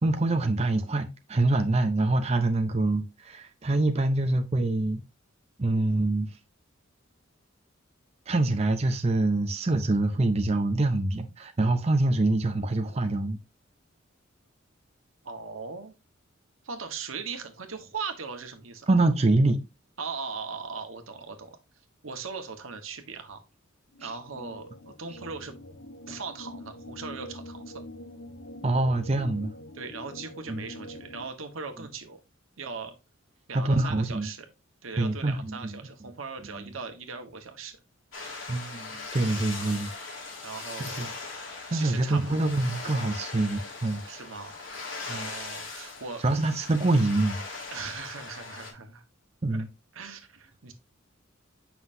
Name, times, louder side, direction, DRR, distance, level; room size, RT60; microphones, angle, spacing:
voice 1, 0.0-5.0 5.6-6.3 8.3-13.4 18.9-19.6 24.0-24.1 28.6-29.5 30.5-30.6 33.5-34.3 35.0-35.8 36.5-36.7 38.5-39.9 40.8-41.1 41.7-44.0 45.1-45.3 46.2-47.4 49.4-49.7, right 2 dB, 30° right, 0.6 m, -25 dB
voice 2, 15.2-15.9 16.6-18.9 20.0-21.6 22.0-23.4 24.0-25.6 26.1-27.8 29.7-32.2 32.6-32.9 33.5-34.5 34.8-37.8 39.6-39.8 40.4-41.1 41.7-42.5 44.1-44.5 45.0-46.6 47.7-49.0 49.5-49.6 49.9-50.7, right 5 dB, 80° right, 1.3 m, -39 dB
sound 1, 23.9-31.2, left 1 dB, 85° left, 1.0 m, -44 dB
sound 2, 38.1-48.7, left 3 dB, 65° left, 2.8 m, -40 dB
7.6 x 5.8 x 2.7 m
head